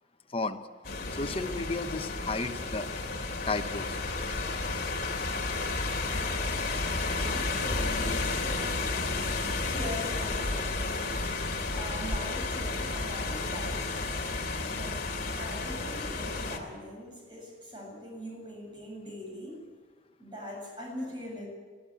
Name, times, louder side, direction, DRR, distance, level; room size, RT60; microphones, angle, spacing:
sound 1, 0.8-16.6, left 3 dB, 50° left, 2.7 m, -32 dB
voice 1, 1.1-2.9 3.5-4.0, left 3 dB, 30° left, 5 dB, 1.0 m, -33 dB
voice 2, 7.3-10.9 11.7-14.1 14.7-15.0 15.3-19.6 20.2-21.5, left 1 dB, 25° right, -1 dB, 7.2 m, -42 dB
21.5 x 14.0 x 9.0 m, 1.4 s
head